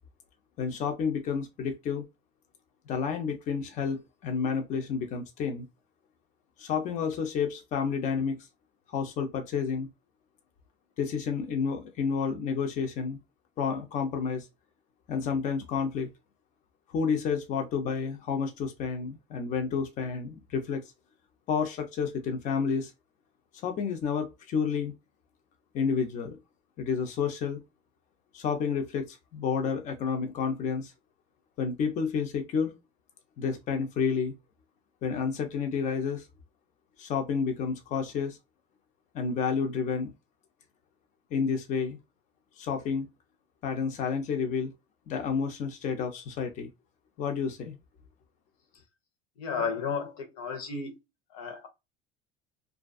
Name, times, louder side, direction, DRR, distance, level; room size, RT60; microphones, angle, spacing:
voice 1, 0.6-2.0 2.9-5.6 6.6-8.4 8.9-9.9 11.0-13.2 13.6-14.5 15.1-16.1 16.9-20.8 21.5-22.9 23.6-24.9 25.7-26.4 26.8-27.6 28.3-30.9 31.6-32.7 33.4-34.3 35.0-36.2 37.0-38.4 39.1-40.1 41.3-42.0 42.6-43.1 43.6-44.7 45.1-46.7 47.2-47.8, left 6 dB, 45° left, 0.6 m, -30 dB
voice 2, 49.4-51.0 51.3-51.7, left 5 dB, 90° left, 0.9 m, -33 dB
2.5 x 2.3 x 2.3 m
cardioid pair, 135°, 17 cm